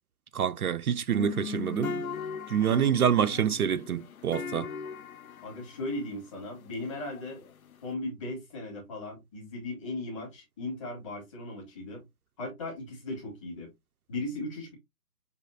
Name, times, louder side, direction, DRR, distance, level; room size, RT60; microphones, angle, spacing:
voice 1, 0.3-2.0 2.5-4.7, right 9 dB, 65° right, 0.5 m, -26 dB
sound 1, 1.2-7.9, left 5 dB, 60° left, 0.7 m, -39 dB
voice 2, 5.4-7.4 7.8-12.0 12.4-13.7 14.1-14.7, left 2 dB, 20° left, 1.8 m, -37 dB
6.7 x 2.8 x 2.5 m
hypercardioid pair, 170°, 48 cm